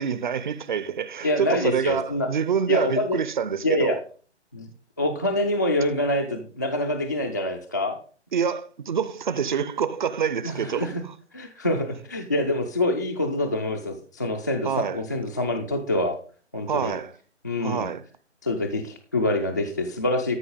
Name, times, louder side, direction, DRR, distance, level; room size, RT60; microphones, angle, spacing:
voice 1, 0.0-4.0 8.3-11.1 14.6-15.0 16.7-17.1 17.6-18.0, right 7 dB, 45° right, 0.8 m, -26 dB
voice 2, 1.2-2.3 2.7-3.2 3.6-4.0 4.5-4.7 5.0-8.0 10.4-11.0 11.3-16.2 16.5-16.9 17.4-17.9 18.4-20.4, left 1 dB, 15° left, 0.5 m, -26 dB
13.5 x 5.6 x 5.3 m
hypercardioid pair, 155°, 35 cm